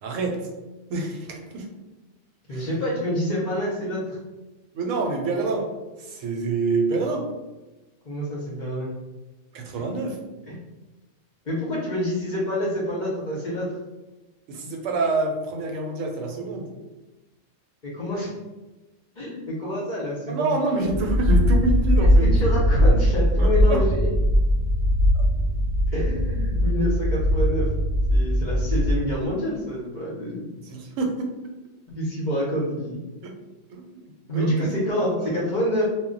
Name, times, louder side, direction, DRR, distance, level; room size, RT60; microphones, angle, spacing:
voice 1, 0.0-0.5 0.9-1.7 2.5-2.7 4.7-7.3 9.5-10.2 14.5-16.7 20.3-22.3 23.4-23.9 25.1-25.2 30.6-31.4 33.2-33.4 33.7-34.8 35.2-35.4 35.8-35.9, right 3 dB, 85° right, 2 dB, 1.0 m, -27 dB
voice 2, 2.5-4.2 8.1-8.9 10.5-10.6 11.4-13.7 17.8-18.3 19.2-20.5 22.0-24.1 25.9-27.7 28.1-30.4 31.9-33.0 34.3-35.9, equal, 45° left, -6 dB, 0.6 m, -27 dB
sound 1, 20.8-29.3, equal, 60° right, 0.5 m, -20 dB
2.1 x 2.1 x 3.7 m, 1.1 s
omnidirectional pair, 1.3 m